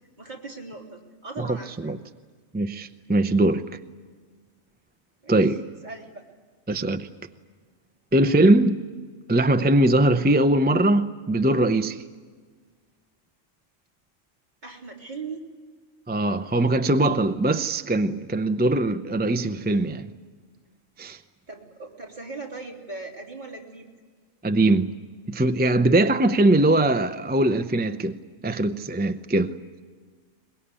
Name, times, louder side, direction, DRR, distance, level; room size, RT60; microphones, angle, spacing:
voice 1, 0.2-1.9 5.2-5.3 5.8-6.2 14.6-15.4 21.5-23.9, right 3 dB, 35° right, 3.5 m, -39 dB
voice 2, 2.5-3.6 5.3-5.6 6.7-7.1 8.1-8.8 9.3-12.0 16.1-20.1 21.0-21.2 24.4-24.9 25.3-28.2 28.4-29.5, right 1 dB, 15° right, 0.4 m, -21 dB
23.0 x 21.0 x 9.9 m
omnidirectional pair, 1.3 m